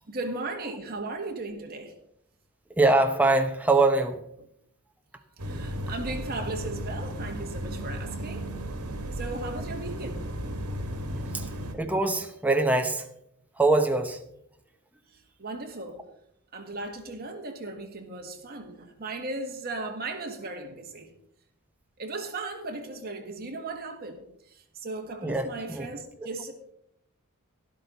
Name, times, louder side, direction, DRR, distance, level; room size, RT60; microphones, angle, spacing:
voice 1, 0.1-1.9 5.4-8.5 9.1-10.2 15.1-16.0 16.5-21.1 22.0-24.2 24.5-26.7, right 2 dB, 45° right, 3 dB, 1.8 m, -36 dB
voice 2, 2.8-4.2 11.3-13.1 13.6-14.2 25.2-25.9, right 2 dB, 5° right, 5 dB, 0.9 m, -23 dB
sound 1, 5.4-11.7, equal, 85° right, 1.7 m, -34 dB
12.5 x 11.5 x 4.1 m, 0.75 s
head